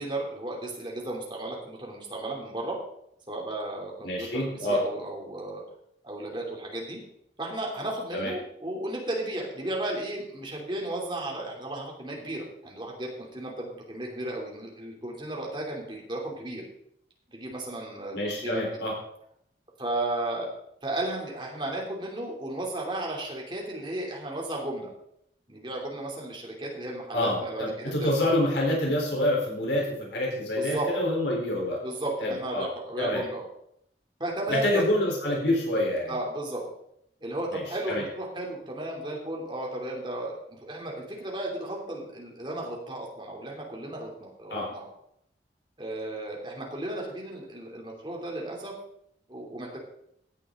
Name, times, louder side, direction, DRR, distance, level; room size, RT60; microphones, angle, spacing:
voice 1, 0.0-2.8 3.3-5.6 6.0-7.0 7.4-16.6 17.3-18.8 19.8-20.5 20.8-24.9 25.5-28.4 30.5-30.9 31.8-33.4 34.2-34.9 36.1-36.6 37.2-44.9 45.8-48.7 49.3-49.8, right 1 dB, 25° right, -1 dB, 3.2 m, -34 dB
voice 2, 4.0-4.8 8.1-8.3 18.1-18.9 27.1-31.8 32.2-32.7 33.0-33.2 34.5-36.1 37.5-38.0 44.5-44.7, left 1 dB, 85° left, -2 dB, 3.9 m, -27 dB
16.0 x 8.7 x 3.8 m, 0.74 s
head